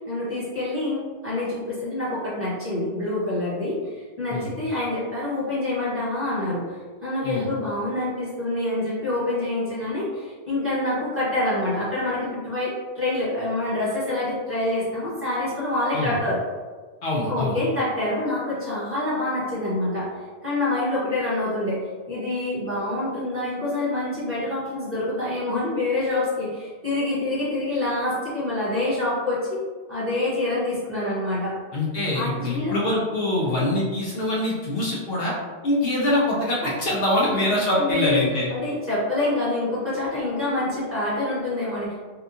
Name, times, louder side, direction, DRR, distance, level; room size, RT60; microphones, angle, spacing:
voice 1, 0.1-6.6 7.0-16.4 17.3-20.1 20.4-21.8 22.1-29.6 29.9-31.6 32.1-32.7 37.2-37.4 37.8-41.9, left 2 dB, 15° right, -11 dB, 1.0 m, -26 dB
voice 2, 17.0-17.6 31.7-35.3 35.6-38.5, left 1 dB, 65° left, -5 dB, 0.8 m, -24 dB
2.8 x 2.3 x 2.5 m, 1.5 s
omnidirectional pair, 1.1 m